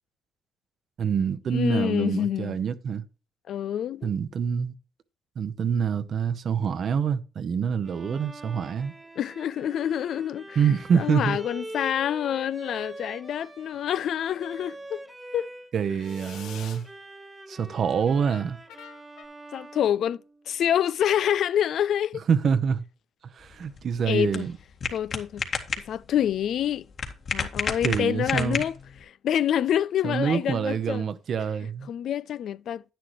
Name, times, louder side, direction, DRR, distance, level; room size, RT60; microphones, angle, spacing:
voice 1, 1.0-3.0 4.0-4.8 5.4-8.9 10.6-11.4 15.7-16.8 17.5-18.6 22.3-22.8 23.4-24.5 27.8-28.6 30.0-31.9, right 7 dB, 55° right, 0.9 m, -26 dB
voice 2, 1.5-2.6 3.5-4.1 9.2-10.6 10.9-15.0 15.3-15.5 19.5-20.2 20.5-22.2 24.1-24.5 24.9-25.4 25.9-26.9 27.3-28.8 29.0-31.0 31.9-32.8, left 10 dB, 70° left, 0.4 m, -27 dB
Bowed string instrument, 7.8-15.7 16.0-20.8, right 1 dB, 15° right, 1.5 m, -44 dB
sound 1, 13.7-14.3 16.0-16.9 18.3-19.3, left 9 dB, 90° left, 1.2 m, -46 dB
sound 2, 23.4-29.0, left 5 dB, 50° left, 1.9 m, -33 dB
10.5 x 9.6 x 3.1 m
cardioid pair, 90°, 0 cm